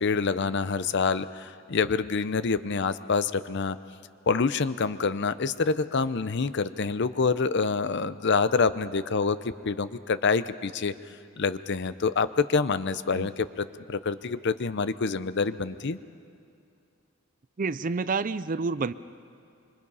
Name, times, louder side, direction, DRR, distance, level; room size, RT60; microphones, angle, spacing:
voice 1, 0.0-3.8 4.3-10.9 11.4-16.0, left 4 dB, 55° left, 14 dB, 0.6 m, -26 dB
voice 2, 17.6-18.9, right 4 dB, 40° right, 15 dB, 0.5 m, -28 dB
25.0 x 25.0 x 5.5 m, 2.5 s
head